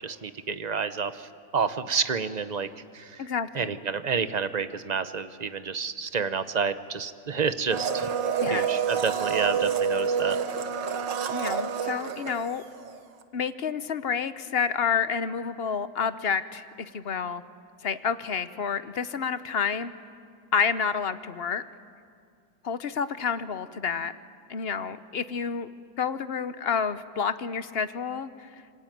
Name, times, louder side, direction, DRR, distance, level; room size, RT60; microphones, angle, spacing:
voice 1, 0.0-2.7 2.9-3.3 3.5-8.1 8.5-10.4, right 5 dB, 35° right, 11 dB, 0.7 m, -29 dB
voice 2, 3.2-3.7 8.4-8.7 11.3-12.6 13.3-17.4 17.8-19.9 20.5-21.6 22.6-24.1 24.5-25.7 26.0-28.5, left 6 dB, 45° left, 12 dB, 0.8 m, -29 dB
Domestic sounds home sounds, 7.7-13.0 13.2-13.3, right 7 dB, 80° right, 2.0 m, -28 dB
25.5 x 25.5 x 9.2 m, 2.2 s
omnidirectional pair, 1.9 m